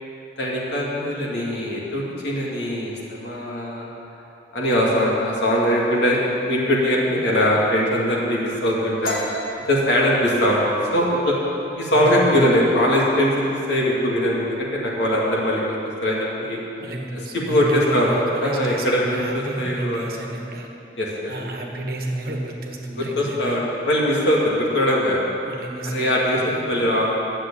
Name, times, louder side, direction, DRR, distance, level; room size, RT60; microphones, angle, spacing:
voice 1, 0.4-3.9 4.5-9.2 9.7-10.6 10.9-11.4 11.8-15.7 16.0-16.6 17.3-19.1 19.3-20.2 21.0-21.3 23.0-25.2 25.9-27.1, equal, 75° left, -4 dB, 2.6 m, -21 dB
sound 1, 9.0-12.5 12.8-13.1 13.5-14.0 14.3-15.1, left 1 dB, 50° left, 1.5 m, -33 dB
voice 2, 11.9-12.3 16.8-20.7 21.3-23.6 25.4-26.6, right 1 dB, 55° right, 1 dB, 1.3 m, -31 dB
9.7 x 7.6 x 8.7 m, 2.9 s
head